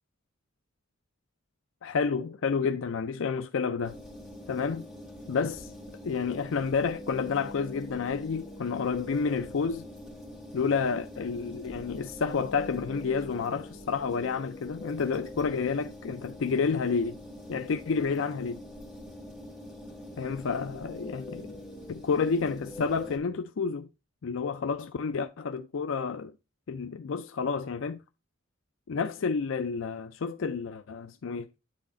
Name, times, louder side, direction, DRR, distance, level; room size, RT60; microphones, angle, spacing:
voice 1, 1.8-4.0 4.5-4.9 5.3-5.7 6.0-9.8 10.5-17.2 17.5-18.6 20.2-21.5 21.9-23.9 24.2-26.3 26.7-28.0 28.9-31.5, left 5 dB, 75° left, 0.4 m, -30 dB
sound 1, 3.8-23.2, left 1 dB, 5° right, 2.7 m, -44 dB
9.7 x 4.1 x 3.8 m
head